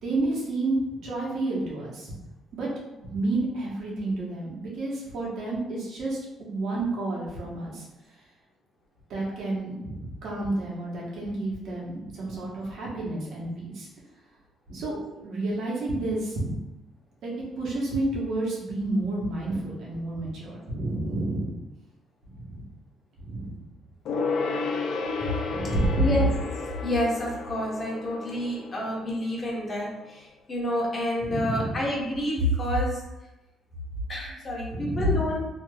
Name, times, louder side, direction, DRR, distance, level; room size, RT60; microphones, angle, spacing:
voice 1, 0.0-2.1 2.5-2.7 3.0-7.8 9.1-13.9 14.7-16.5 17.2-21.5 22.3-22.6 23.2-23.6 25.5-26.3 31.2-31.8 34.7-35.3, right 2 dB, 70° right, -4 dB, 1.0 m, -31 dB
Gong, 24.0-29.9 30.2-30.3, left 4 dB, 75° left, 0.4 m, -32 dB
voice 2, 26.0-26.3 26.8-33.0 34.1-35.5, left 1 dB, 35° left, -3 dB, 1.0 m, -27 dB
3.1 x 2.8 x 2.2 m, 0.98 s
cardioid pair, 95°, 0 cm